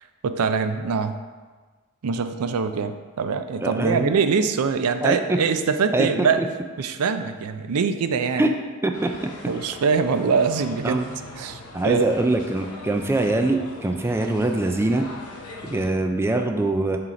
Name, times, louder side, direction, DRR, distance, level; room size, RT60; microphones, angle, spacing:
voice 1, 0.2-1.2 2.0-6.4 6.8-8.5 9.5-11.0 11.4-12.1, right 5 dB, 90° right, 9 dB, 0.4 m, -23 dB
voice 2, 3.6-4.2 5.0-5.4 5.9-6.3 8.4-8.5 8.8-9.1 10.8-11.1 11.7-15.1 15.6-17.0, right 2 dB, 10° right, 4 dB, 0.3 m, -23 dB
sound 1, 8.9-15.9, left 2 dB, 85° left, 0.9 m, -41 dB
7.6 x 2.9 x 5.0 m, 1.4 s
head